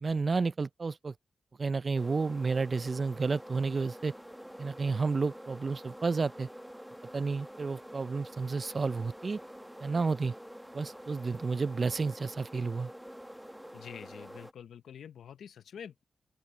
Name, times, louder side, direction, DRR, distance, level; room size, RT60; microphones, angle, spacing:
voice 1, 0.0-1.1 1.6-4.1 4.6-6.5 7.1-9.4 9.8-10.3 10.7-12.9, right 4 dB, 45° right, 0.4 m, -31 dB
sound 1, 1.9-14.5, equal, 5° right, 1.3 m, -47 dB
voice 2, 13.7-16.0, left 8 dB, 85° left, 0.8 m, -47 dB
open air
cardioid pair, 60°, 0 cm